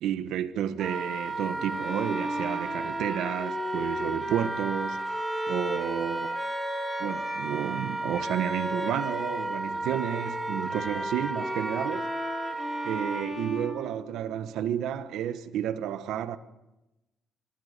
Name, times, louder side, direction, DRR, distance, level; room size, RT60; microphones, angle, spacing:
voice 1, 0.0-6.4 7.0-12.1 12.8-16.4, right 10 dB, 85° right, 1.3 m, -31 dB
Wind instrument woodwind instrument, 0.8-13.2, right 2 dB, 20° right, 4.1 m, -33 dB
Bowed string instrument, 1.7-9.6 9.8-14.6, left 1 dB, 20° left, 6.0 m, -37 dB
25.0 x 23.0 x 6.8 m
cardioid pair, 90°, 0 cm